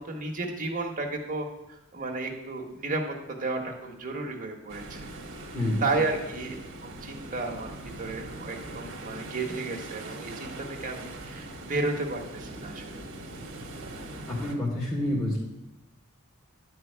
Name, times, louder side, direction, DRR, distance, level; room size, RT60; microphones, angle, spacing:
voice 1, 0.0-5.1 5.8-6.5 6.8-7.7 8.0-13.0, right 3 dB, 40° right, 0 dB, 1.6 m, -33 dB
sound 1, 4.7-14.5, right 2 dB, 60° right, 1.5 m, -41 dB
voice 2, 5.5-5.8 14.3-15.4, left 1 dB, 20° left, -8 dB, 2.2 m, -28 dB
11.5 x 4.6 x 8.1 m, 0.96 s
head